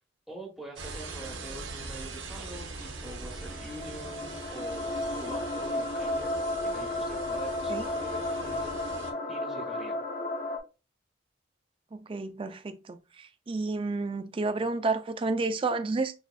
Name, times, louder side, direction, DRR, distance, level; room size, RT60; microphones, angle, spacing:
voice 1, 0.3-10.0, right 1 dB, ahead, 0.8 m, -45 dB
sound 1, 0.8-9.1, right 3 dB, 80° right, 0.9 m, -42 dB
sound 2, 3.2-10.6, left 1 dB, 45° left, 0.7 m, -33 dB
voice 2, 11.9-16.1, right 3 dB, 30° right, 0.3 m, -31 dB
6.1 x 2.5 x 2.2 m
head